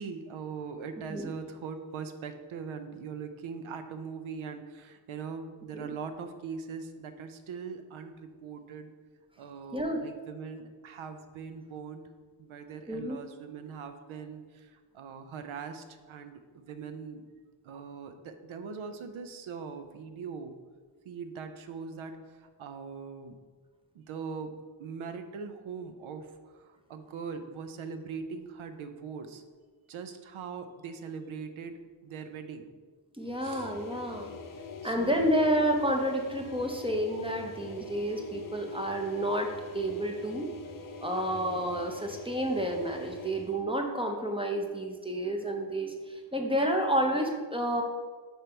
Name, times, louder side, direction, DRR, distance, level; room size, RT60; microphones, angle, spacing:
voice 1, 0.0-8.9 9.4-12.1 12.4-17.2 17.6-20.5 21.0-23.4 23.9-24.5 24.8-29.4 29.9-32.7 33.4-33.7 34.6-35.3, right 5 dB, 90° right, 8 dB, 0.7 m, -41 dB
voice 2, 12.9-13.2 33.2-34.3 34.8-40.5 41.0-47.8, right 1 dB, 10° right, 2 dB, 0.5 m, -30 dB
sound 1, 33.2-43.6, left 4 dB, 45° left, 0.6 m, -44 dB
4.5 x 4.4 x 5.2 m, 1.5 s
wide cardioid pair, 140°, 47 cm